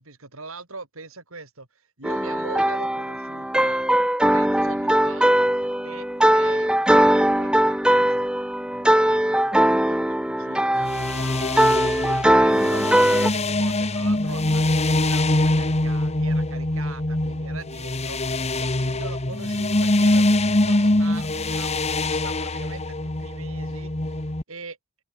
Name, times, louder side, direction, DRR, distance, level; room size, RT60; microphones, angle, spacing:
voice 1, 0.0-3.9 4.2-5.4 5.8-8.3 8.7-11.2 11.6-24.8, right 3 dB, 75° right, 5.7 m, -41 dB
sound 1, 2.0-13.3, right 1 dB, 5° right, 1.2 m, -20 dB
sound 2, 10.8-24.4, left 1 dB, 30° left, 1.6 m, -23 dB
head